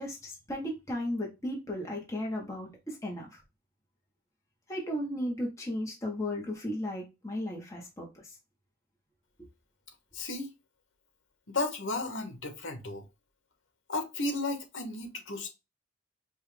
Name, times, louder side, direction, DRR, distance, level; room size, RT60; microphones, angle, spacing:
voice 1, 0.0-3.4 4.7-8.2 9.4-9.5, left 1 dB, 15° left, 1.2 m, -35 dB
voice 2, 10.1-10.5 11.5-13.0 13.9-15.5, left 2 dB, 75° left, 1.3 m, -34 dB
5.5 x 2.6 x 3.3 m
head